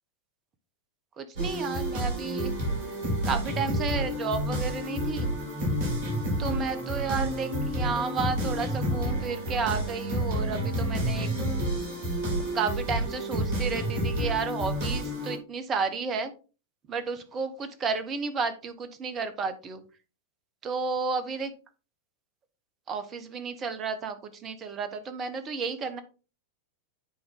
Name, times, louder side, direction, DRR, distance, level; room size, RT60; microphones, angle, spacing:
voice 1, 1.2-2.5 3.2-5.3 6.4-11.3 12.4-16.3 16.9-19.8 20.6-21.5 22.9-26.0, right 5 dB, 25° right, 10 dB, 1.1 m, -32 dB
sound 1, 1.3-15.4, right 1 dB, 50° right, 3.4 m, -29 dB
9.5 x 4.3 x 3.6 m, 0.35 s
figure-of-eight pair, 90°, 0 cm